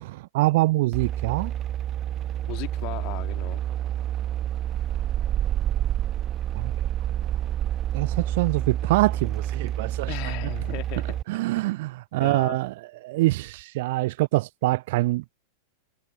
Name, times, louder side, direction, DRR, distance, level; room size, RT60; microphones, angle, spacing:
voice 1, 0.0-1.5 6.5-6.7 7.9-10.1 11.3-12.7 13.0-15.4, right 19 dB, 50° right, 0.4 m, -25 dB
sound 1, 0.9-11.2, right 11 dB, 30° right, 1.3 m, -28 dB
voice 2, 2.5-3.6 10.1-11.2 12.2-12.6, left 30 dB, 45° left, 2.4 m, -36 dB
figure-of-eight pair, 90°, 0 cm